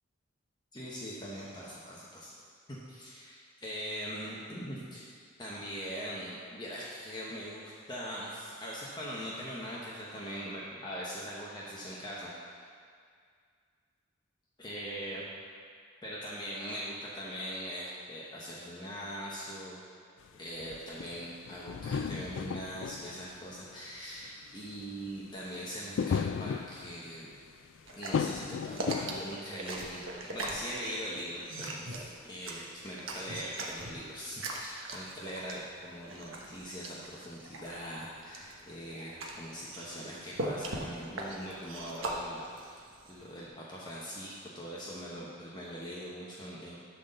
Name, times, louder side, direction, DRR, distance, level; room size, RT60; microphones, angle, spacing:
voice 1, 0.7-2.3 2.7-5.0 5.4-12.3 14.6-15.3 16.0-19.8 20.4-27.3 27.9-42.8 43.1-46.8, equal, 20° left, -6 dB, 1.1 m, -41 dB
sound 1, 20.3-20.4 20.6-23.7 24.2-24.3 24.6-24.8 26.0-27.2 28.1-29.4, left 6 dB, 65° left, 0.3 m, -34 dB
sound 2, 27.8-43.4, right 2 dB, 80° right, 1.1 m, -41 dB
11.5 x 4.0 x 6.7 m, 2.1 s
head